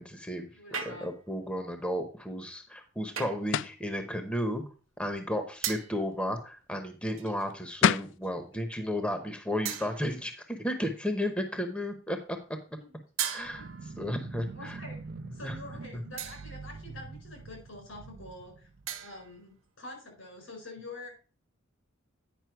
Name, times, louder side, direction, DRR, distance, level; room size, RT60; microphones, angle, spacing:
voice 1, 0.0-0.5 0.8-4.6 5.0-12.4 13.3-14.8 15.3-15.6 15.9-16.0, equal, 5° left, 6 dB, 0.8 m, -33 dB
voice 2, 0.5-1.1 12.8-12.9 14.5-15.0 15.3-18.7 19.0-21.1, left 2 dB, 80° left, 2 dB, 4.6 m, -46 dB
sound 1, 0.7-1.3 3.2-3.6 5.6-6.1 7.2-7.6 8.2-8.4 9.6-10.2 13.2-14.0 16.2-16.7 18.9-19.4, right 9 dB, 80° right, 1.1 m, -37 dB
sound 2, 3.5-3.8 7.5-7.6 7.8-8.2, left 8 dB, 65° left, 0.3 m, -25 dB
sound 3, 13.4-19.4, right 4 dB, 50° right, 0.4 m, -45 dB
9.3 x 5.5 x 4.5 m, 0.36 s
head